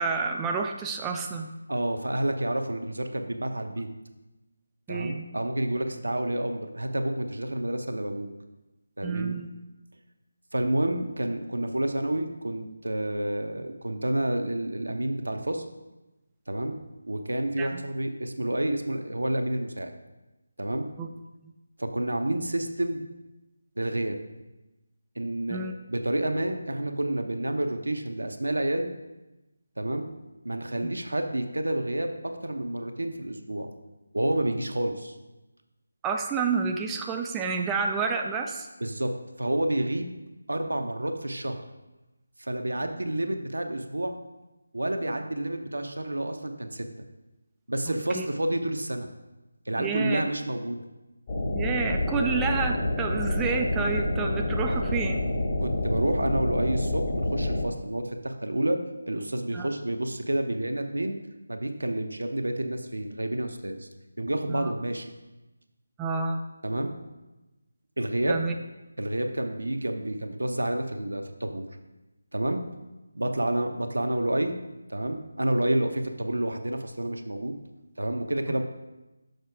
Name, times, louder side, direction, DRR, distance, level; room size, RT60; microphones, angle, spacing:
voice 1, 0.0-1.5 4.9-5.2 9.0-9.5 17.6-17.8 21.0-21.1 25.5-25.7 30.8-30.9 36.0-38.7 47.9-48.3 49.8-50.2 51.5-55.2 59.5-59.7 64.5-64.7 66.0-66.4 68.3-68.5, right 5 dB, 10° right, 2 dB, 0.3 m, -29 dB
voice 2, 1.7-3.9 4.9-8.3 9.0-9.4 10.5-15.6 16.5-16.8 17.1-19.9 20.6-20.9 21.8-23.0 23.8-24.2 25.2-28.9 29.8-30.1 30.4-33.7 34.1-35.2 38.8-40.1 40.5-41.6 42.4-44.2 44.7-46.9 47.7-49.1 49.7-50.8 54.7-54.8 55.6-58.8 59.1-61.2 61.5-63.9 64.2-65.1 66.6-66.9 68.0-68.4 69.0-71.7 72.3-72.6 73.1-74.6 74.9-77.5 78.0-78.6, right 1 dB, 85° right, 5 dB, 0.8 m, -29 dB
sound 1, 51.3-57.7, left 1 dB, 35° left, 1.3 m, -28 dB
6.6 x 4.3 x 4.7 m, 1.0 s
figure-of-eight pair, 160°, 0 cm